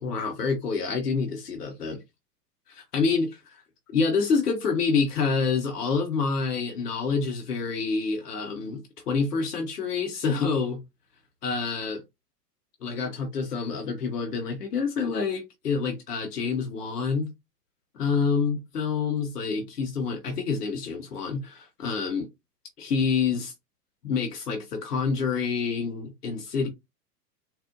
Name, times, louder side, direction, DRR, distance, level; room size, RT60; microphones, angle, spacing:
voice 1, 0.0-2.0 2.7-3.3 3.9-10.8 11.4-12.0 12.8-17.3 17.9-22.3 22.8-23.5 24.0-26.7, left 5 dB, 70° left, 0.9 m, -27 dB
4.2 x 2.0 x 2.5 m
figure-of-eight pair, 100°, 48 cm